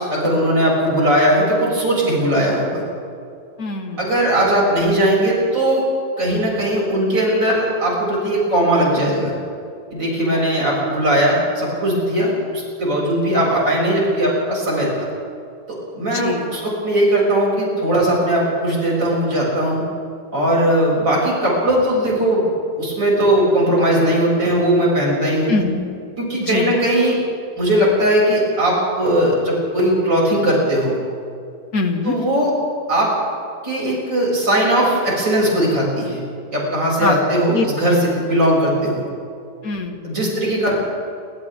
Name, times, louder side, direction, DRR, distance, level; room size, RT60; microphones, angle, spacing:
voice 1, 0.0-2.8 4.0-5.8 6.2-9.4 9.9-14.9 15.9-19.8 20.3-22.5 22.8-25.5 26.2-27.2 27.6-30.9 32.0-32.5 32.9-33.1 33.6-36.2 36.5-39.0 40.0-40.7, right 1 dB, 85° right, -5 dB, 8.0 m, -18 dB
voice 2, 3.6-4.1 10.3-10.5 16.1-16.5 25.5-25.8 26.4-26.8 31.7-32.1 37.0-37.2 37.5-38.0 39.6-40.4, left 3 dB, 55° left, 5 dB, 2.2 m, -24 dB
30.0 x 26.0 x 3.8 m, 2.5 s
omnidirectional pair, 1.9 m